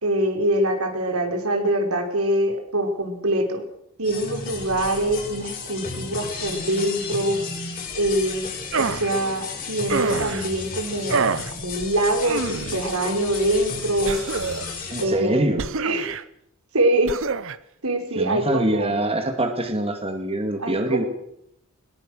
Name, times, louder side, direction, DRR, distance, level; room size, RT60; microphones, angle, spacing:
voice 1, 0.0-3.6 4.0-7.4 7.9-8.5 8.8-11.2 11.6-14.2 15.0-16.1 16.7-17.2 17.8-19.0 20.6-21.0, right 1 dB, 90° right, 4 dB, 4.5 m, -24 dB
sound 1, 4.0-15.0, left 4 dB, 40° left, 6.1 m, -33 dB
sound 2, 8.7-9.1 9.9-10.5 11.1-11.5 12.2-12.9 14.1-14.8 15.6-16.2 17.1-17.6, right 5 dB, 65° right, 0.9 m, -26 dB
voice 2, 14.9-15.7 18.2-21.0, right 1 dB, 25° right, 5 dB, 2.2 m, -24 dB
21.0 x 20.0 x 6.4 m, 0.74 s
head